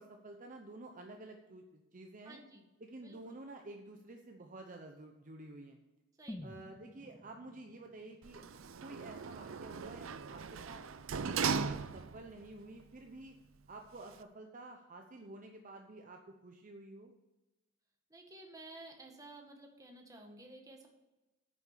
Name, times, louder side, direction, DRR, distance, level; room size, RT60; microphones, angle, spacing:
voice 1, 0.0-2.4 2.8-5.8 6.4-8.5 8.8-10.8 11.2-13.3 13.7-17.1, right 2 dB, 40° right, 3 dB, 0.8 m, -51 dB
voice 2, 2.3-2.7 3.0-3.4 6.2-6.5 18.1-20.9, right 2 dB, 20° right, 1 dB, 1.8 m, -53 dB
sound 1, 6.3-10.2 10.6-10.7, left 1 dB, 10° left, 0.4 m, -52 dB
Sliding door, 8.2-12.4 12.8-12.9, right 6 dB, 80° right, 0.5 m, -38 dB
9.5 x 7.0 x 6.8 m, 1.0 s
head